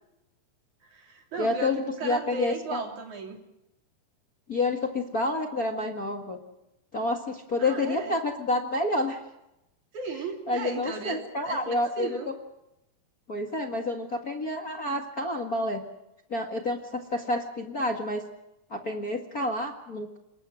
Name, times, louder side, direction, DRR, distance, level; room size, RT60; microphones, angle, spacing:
voice 1, 0.8-3.4 7.6-8.2 9.9-12.3, right 4 dB, 45° right, 3 dB, 4.4 m, -36 dB
voice 2, 1.4-2.8 4.5-6.4 6.9-9.2 10.5-12.2 13.3-15.8 16.3-18.2 18.7-20.2, left 2 dB, 45° left, 3 dB, 1.1 m, -29 dB
27.5 x 22.0 x 6.4 m, 0.87 s
omnidirectional pair, 4.8 m